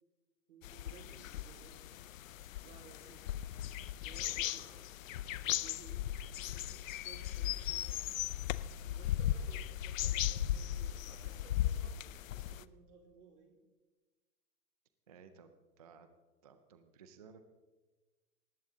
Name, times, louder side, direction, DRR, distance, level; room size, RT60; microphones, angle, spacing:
voice 1, 0.5-1.8 2.6-3.3 4.0-6.1 6.3-8.2 8.8-13.6, right 5 dB, 75° right, 1 dB, 4.4 m, -59 dB
sound 1, 0.6-12.6, left 12 dB, 60° left, 0.6 m, -37 dB
voice 2, 15.1-16.1 16.4-17.4, right 6 dB, 25° right, 9 dB, 0.4 m, -57 dB
19.0 x 15.0 x 3.8 m, 1.2 s
hypercardioid pair, 170°, 46 cm